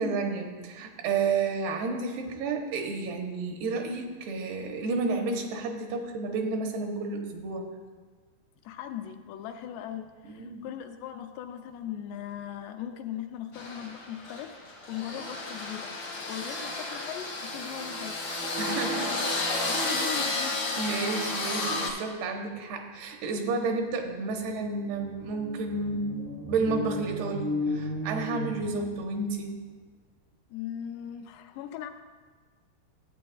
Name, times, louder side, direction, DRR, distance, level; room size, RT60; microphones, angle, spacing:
voice 1, 0.0-7.7 10.3-10.6 18.6-19.1 20.8-29.5, right 4 dB, 85° right, 2 dB, 2.9 m, -31 dB
voice 2, 8.6-18.2 18.7-20.9 30.5-31.9, left 10 dB, 90° left, 7 dB, 2.7 m, -39 dB
sound 1, 13.5-21.9, left 2 dB, 70° left, 1.1 m, -32 dB
sound 2, 23.9-24.0 24.3-29.3, left 2 dB, 40° left, 0.5 m, -35 dB
13.5 x 8.6 x 2.3 m, 1.4 s
omnidirectional pair, 4.7 m